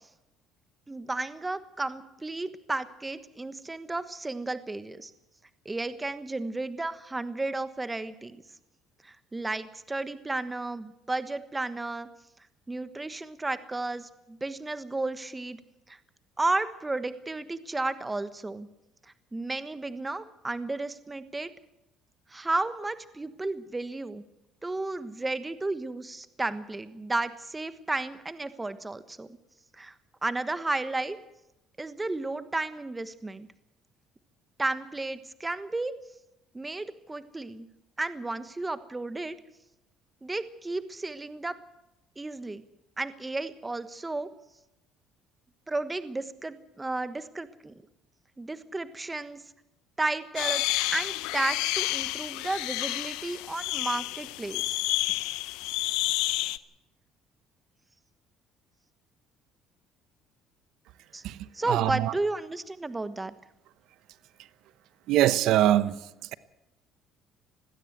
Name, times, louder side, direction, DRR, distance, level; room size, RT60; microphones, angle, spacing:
voice 1, 0.9-5.1 5.6-8.4 9.0-12.1 12.7-15.6 15.9-16.0 16.4-18.7 19.3-21.5 22.3-24.2 24.6-29.3 29.7-29.9 30.2-31.2 31.8-33.5 34.6-35.9 36.5-37.7 38.0-39.3 40.2-41.6 42.2-42.6 43.0-44.3 45.7-47.7 48.4-49.4 50.0-50.6 50.9-54.8 61.1-61.2 61.5-63.3, right 2 dB, 15° right, 1.2 m, -33 dB
sound 1, 50.4-56.6, left 19 dB, 85° left, 0.8 m, -30 dB
voice 2, 61.2-62.1 65.1-66.0, right 13 dB, 75° right, 0.9 m, -23 dB
20.5 x 15.5 x 8.0 m
supercardioid pair, 85°, 0 cm